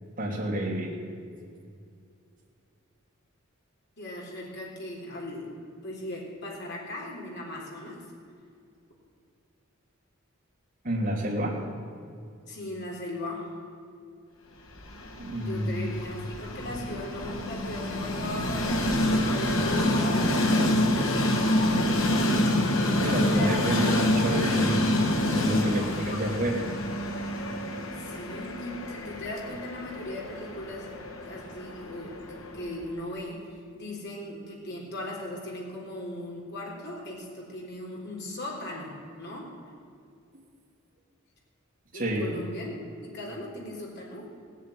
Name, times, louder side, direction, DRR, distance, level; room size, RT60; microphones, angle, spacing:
voice 1, 0.2-1.0 10.8-11.6 15.2-15.9 23.0-24.9 25.3-26.7 41.9-42.4, right 1 dB, 40° right, -3 dB, 3.2 m, -29 dB
voice 2, 4.0-5.5 5.8-8.0 12.4-13.5 15.4-20.6 22.8-24.0 25.7-26.5 27.6-27.7 28.0-31.0 31.2-33.4 33.7-39.5 41.9-42.7 43.0-44.3, left 1 dB, 55° left, -2 dB, 3.7 m, -38 dB
Train, 14.8-32.8, left 1 dB, 70° left, 1.7 m, -27 dB
17.5 x 7.5 x 9.3 m, 2.4 s
head